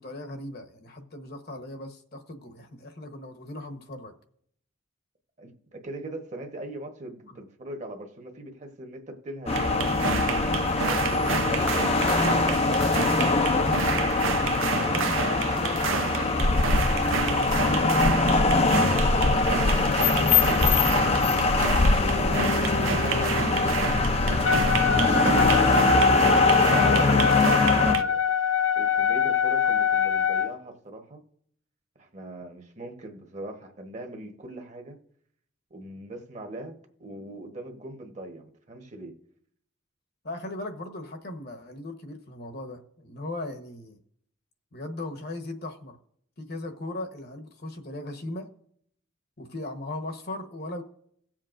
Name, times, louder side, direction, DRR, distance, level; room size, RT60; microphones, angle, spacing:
voice 1, 0.0-4.1 12.6-14.2 14.7-19.4 19.8-21.7 40.2-44.0 44.7-46.0 46.4-48.5 49.4-50.8, left 1 dB, 55° left, 5 dB, 1.1 m, -38 dB
voice 2, 5.4-11.7 22.1-26.0 27.3-28.2 28.8-31.2 32.0-35.0 35.7-39.2, right 1 dB, 35° right, 3 dB, 1.2 m, -41 dB
sound 1, 9.5-27.9, left 3 dB, 30° left, 0.5 m, -22 dB
sound 2, 9.5-28.0, right 6 dB, 90° right, 0.6 m, -31 dB
Wind instrument woodwind instrument, 24.4-30.5, left 8 dB, 75° left, 0.7 m, -25 dB
17.5 x 7.4 x 2.6 m, 0.66 s
head